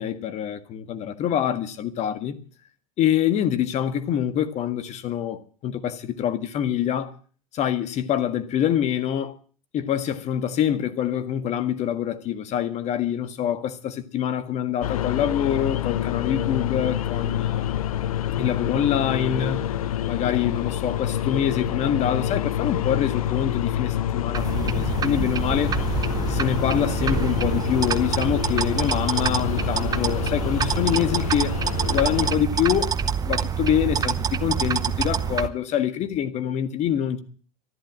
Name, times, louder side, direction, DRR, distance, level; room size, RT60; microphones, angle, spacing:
voice 1, 0.0-2.4 3.0-7.1 7.5-9.4 9.7-17.8 18.4-19.7 20.0-25.8 26.3-31.6 31.9-32.9 33.2-37.2, left 10 dB, 40° left, 1.7 m, -25 dB
sound 1, 14.8-32.3, left 11 dB, 75° left, 0.8 m, -27 dB
sound 2, 24.3-35.5, right 7 dB, 20° right, 0.9 m, -26 dB
13.5 x 11.5 x 7.5 m
hypercardioid pair, 100°, 18 cm